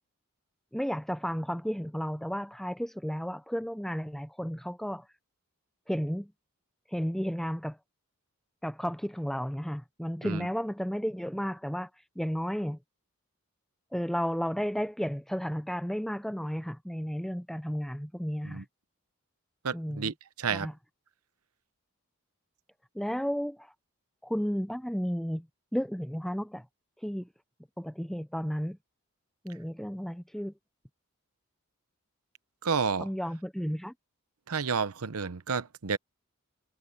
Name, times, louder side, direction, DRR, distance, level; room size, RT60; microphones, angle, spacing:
voice 1, 0.7-5.0 5.9-6.3 6.9-7.8 8.6-11.9 12.2-12.8 13.9-18.6 19.7-20.1 20.5-20.7 22.9-23.7 24.2-25.5 25.7-26.6 27.0-27.3 27.8-28.8 29.4-30.5 33.0-33.9, equal, ahead, 0.5 m, -33 dB
voice 2, 19.6-20.7 32.6-33.1 34.5-36.0, right 5 dB, 80° right, 0.9 m, -31 dB
head